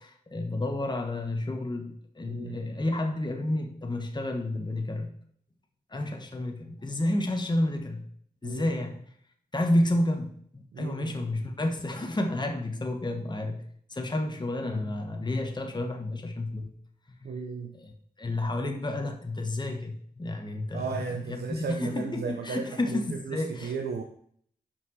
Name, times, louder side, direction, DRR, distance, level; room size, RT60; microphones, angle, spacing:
voice 1, 0.0-5.1 5.9-8.1 8.4-9.0 9.5-13.6 13.9-16.7 17.7-17.9 18.2-23.8, left 1 dB, 25° left, 3 dB, 1.1 m, -30 dB
voice 2, 2.3-2.6 8.4-8.8 10.7-11.2 17.2-17.7 20.7-24.0, right 5 dB, 75° right, 4 dB, 0.7 m, -35 dB
5.7 x 5.4 x 6.3 m, 0.63 s
cardioid pair, 50°, 17 cm